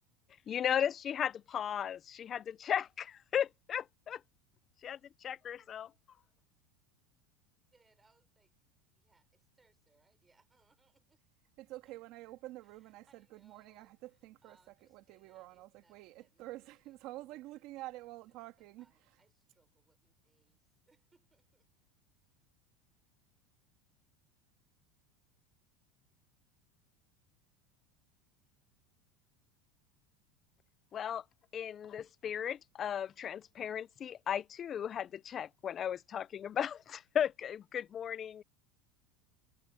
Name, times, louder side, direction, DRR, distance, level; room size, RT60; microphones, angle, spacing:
voice 1, 0.5-4.2 4.8-5.9 30.9-31.2 31.5-38.4, left 9 dB, 25° left, 0.4 m, -36 dB
voice 2, 7.7-8.5 8.9-11.2 11.9-12.0 12.6-16.5 16.8-17.6 18.2-21.9, right 3 dB, 10° right, 5.9 m, -72 dB
voice 3, 11.6-14.6 14.9-18.9, right 17 dB, 45° right, 2.0 m, -48 dB
supercardioid pair, 170°, 0 cm